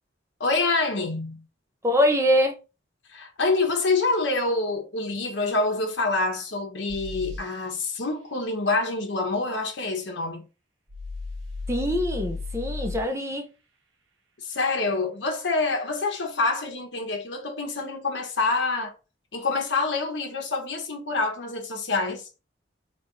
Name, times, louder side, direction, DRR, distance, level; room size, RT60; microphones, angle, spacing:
voice 1, 0.4-1.4 3.1-10.5 14.4-18.9 19.3-22.2, left 3 dB, 65° left, 1.1 m, -26 dB
voice 2, 1.8-2.5 11.7-13.5, equal, 15° right, 0.6 m, -23 dB
sound 1, 6.9-7.4 10.9-13.0, left 3 dB, 80° right, 1.0 m, -34 dB
3.4 x 2.5 x 3.9 m
head